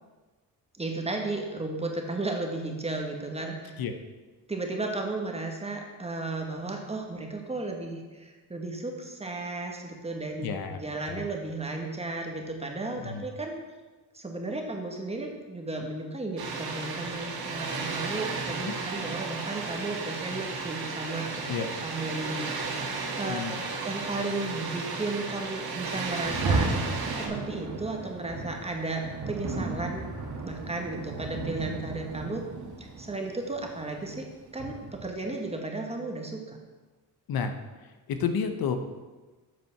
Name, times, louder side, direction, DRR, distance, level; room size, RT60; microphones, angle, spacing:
voice 1, 0.8-3.7 4.5-13.5 14.1-21.6 21.8-22.5 23.2-26.7 27.1-30.1 30.4-32.4 32.8-34.3 34.5-36.6, right 2 dB, 15° right, 2 dB, 1.4 m, -34 dB
voice 2, 10.4-11.2 13.0-13.2 18.6-18.7 21.5-21.7 23.3-23.6 37.3-37.5 38.1-38.8, left 6 dB, 70° left, 7 dB, 0.9 m, -31 dB
Water, 16.4-27.3, right 4 dB, 75° right, 1.7 m, -34 dB
Rain, 26.1-35.2, right 3 dB, 50° right, 1.6 m, -34 dB
7.6 x 5.4 x 5.8 m, 1.2 s
cardioid pair, 90°, 38 cm